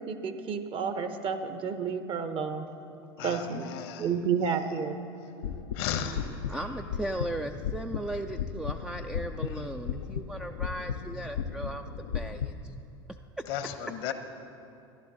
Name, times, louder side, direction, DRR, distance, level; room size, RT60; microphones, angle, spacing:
voice 1, 0.0-2.7 3.2-3.7 4.0-5.0, right 6 dB, 40° right, 9 dB, 0.9 m, -30 dB
voice 2, 3.2-4.2 5.7-6.7 9.5-9.6 13.4-14.1, left 9 dB, 65° left, 8 dB, 0.9 m, -36 dB
sound 1, 5.4-12.5, left 7 dB, 80° left, 0.5 m, -35 dB
voice 3, 6.5-11.9 12.1-12.5 13.4-13.5, right 1 dB, 5° right, 5 dB, 0.3 m, -37 dB
13.5 x 11.0 x 3.8 m, 2.7 s
hypercardioid pair, 80°, 13 cm